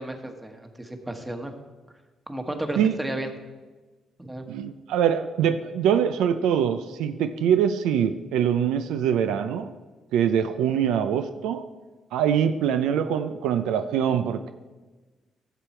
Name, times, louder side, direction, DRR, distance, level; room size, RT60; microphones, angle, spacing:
voice 1, 0.0-1.5 2.3-3.3 4.2-4.4, right 1 dB, 10° right, 5 dB, 1.3 m, -33 dB
voice 2, 4.5-9.7 10.1-11.6 12.1-14.5, right 8 dB, 90° right, 10 dB, 0.5 m, -23 dB
12.5 x 7.0 x 4.4 m, 1.3 s
cardioid pair, 90°, 0 cm